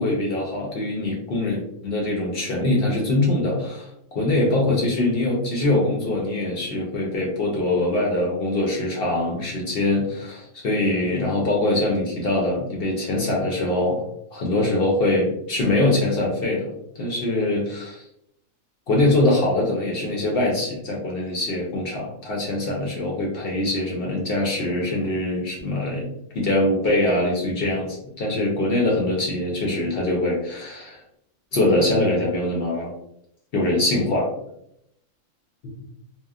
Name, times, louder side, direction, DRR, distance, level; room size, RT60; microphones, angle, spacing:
voice 1, 0.0-3.9 4.1-14.0 14.3-18.0 18.9-26.1 26.3-31.0 31.5-32.9 33.5-34.3 35.6-35.7, left 1 dB, 55° left, -2 dB, 0.7 m, -23 dB
2.9 x 2.0 x 2.3 m, 0.76 s
omnidirectional pair, 1.4 m